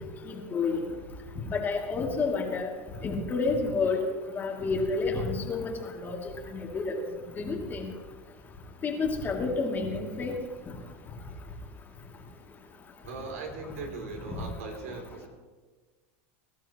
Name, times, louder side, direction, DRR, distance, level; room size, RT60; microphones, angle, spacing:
voice 1, 0.3-0.8 1.5-2.7 3.0-4.0 4.3-5.7 6.0-6.2 6.5-7.0 7.4-7.9 8.8-10.3 14.3-14.4, left 4 dB, 25° left, 0 dB, 2.7 m, -29 dB
voice 2, 13.0-15.3, right 3 dB, 90° right, 3 dB, 3.3 m, -39 dB
22.5 x 12.5 x 3.1 m, 1.4 s
supercardioid pair, 125°, 8 cm